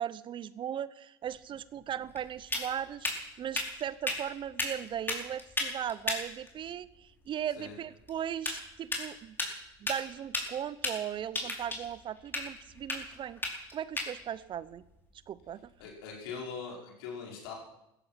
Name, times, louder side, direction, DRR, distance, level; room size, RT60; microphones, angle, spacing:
voice 1, 0.0-3.1 3.4-9.4 9.8-13.4 13.7-14.8 15.3-15.7, right 10 dB, 40° right, 18 dB, 0.8 m, -38 dB
sound 1, 1.2-15.9, left 2 dB, 15° left, 4.6 m, -38 dB
voice 2, 15.8-17.5, left 5 dB, 70° left, -1 dB, 5.4 m, -41 dB
16.0 x 14.0 x 5.9 m, 0.86 s
hypercardioid pair, 75°, 13 cm